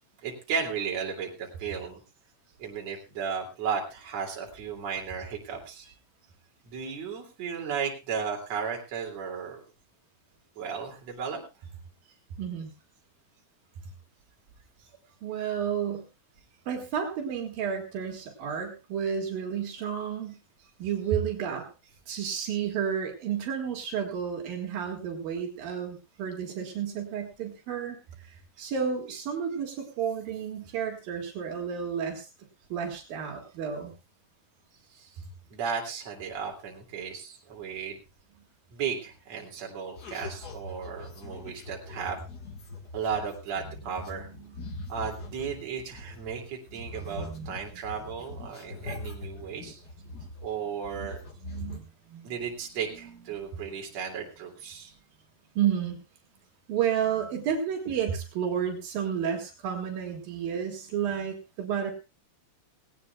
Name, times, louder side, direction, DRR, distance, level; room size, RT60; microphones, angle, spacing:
voice 1, 0.2-2.0 2.6-5.9 6.6-9.6 10.6-11.4 14.8-14.9 20.6-20.7 22.1-22.2 34.9-35.2 35.5-38.0 38.7-42.2 42.9-44.3 44.9-49.8 50.4-51.2 52.2-54.9, right 6 dB, 50° right, 0 dB, 3.6 m, -35 dB
voice 2, 12.4-12.7 15.2-16.1 16.7-20.4 20.8-21.7 22.1-32.3 32.7-33.9 46.7-47.5 51.0-51.1 51.4-52.3 55.6-56.0 56.7-61.9, right 8 dB, 75° right, 2 dB, 3.7 m, -31 dB
sound 1, 40.0-46.4 46.7-50.6 50.8-51.8, left 2 dB, 40° left, 1.5 m, -42 dB
19.0 x 17.5 x 2.3 m, 0.29 s
omnidirectional pair, 4.1 m